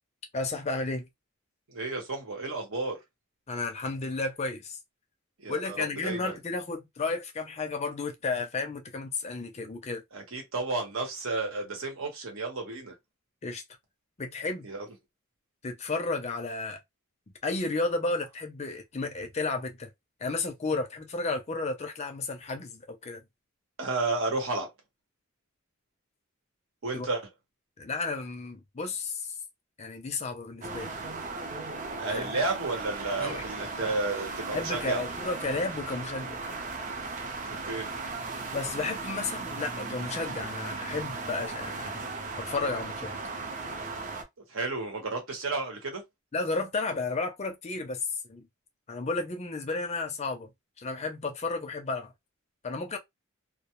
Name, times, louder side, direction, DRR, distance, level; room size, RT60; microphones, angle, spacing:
voice 1, 0.3-1.1 3.5-4.8 5.5-10.0 13.4-13.6 14.2-14.7 15.6-16.8 17.4-19.9 20.2-23.2 26.9-27.1 27.8-29.3 29.8-30.9 32.1-32.4 33.2-33.5 34.5-36.4 38.5-42.1 42.4-43.1 46.3-48.5 48.9-50.5 50.8-52.1 52.6-53.0, left 3 dB, 30° left, 0.5 m, -32 dB
voice 2, 1.7-3.0 5.4-6.4 10.1-12.9 14.6-14.9 23.8-24.7 26.8-27.2 32.0-35.0 37.5-37.9 44.5-46.0, right 3 dB, 75° right, 1.0 m, -32 dB
sound 1, 30.6-44.2, right 3 dB, 35° right, 0.5 m, -37 dB
2.2 x 2.1 x 2.9 m
head